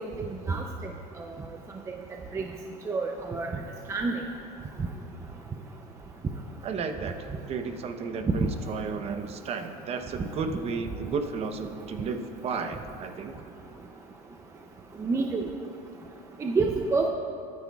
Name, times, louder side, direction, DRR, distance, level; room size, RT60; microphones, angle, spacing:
voice 1, 0.2-0.6 1.9-2.0 2.3-2.5 2.9-3.5 3.9-4.2 8.4-8.5 10.2-10.3 15.0-15.4 16.4-17.1, right 4 dB, 15° right, 3 dB, 0.5 m, -27 dB
voice 2, 6.6-7.1 7.5-13.3, right 5 dB, 35° right, 7 dB, 0.8 m, -33 dB
21.5 x 9.4 x 2.3 m, 2.6 s
supercardioid pair, 135°, 19 cm